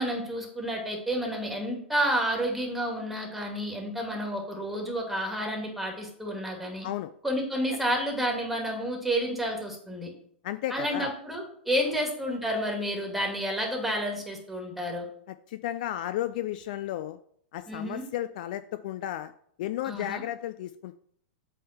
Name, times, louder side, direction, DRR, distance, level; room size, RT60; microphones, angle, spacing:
voice 1, 0.0-6.9 7.2-10.1 10.7-15.1 17.7-18.0 19.9-20.2, equal, ahead, 1 dB, 2.1 m, -30 dB
voice 2, 10.4-11.1 15.3-17.2 17.5-19.3 19.6-21.0, left 13 dB, 50° left, 12 dB, 0.4 m, -33 dB
8.3 x 3.6 x 5.7 m, 0.65 s
figure-of-eight pair, 100°, 6 cm